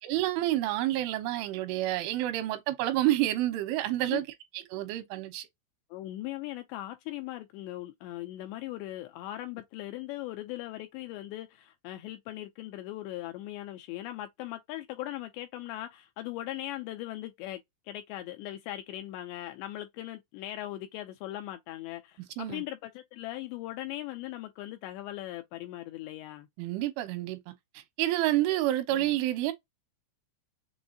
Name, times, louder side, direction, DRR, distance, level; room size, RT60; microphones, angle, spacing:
voice 1, 0.0-4.2 4.7-5.5 22.4-22.6 26.6-27.5 28.0-29.5, right 15 dB, 90° right, 3.2 m, -29 dB
voice 2, 5.9-26.5 28.9-29.2, left 15 dB, 80° left, 2.6 m, -39 dB
7.1 x 2.5 x 2.7 m
omnidirectional pair, 5.5 m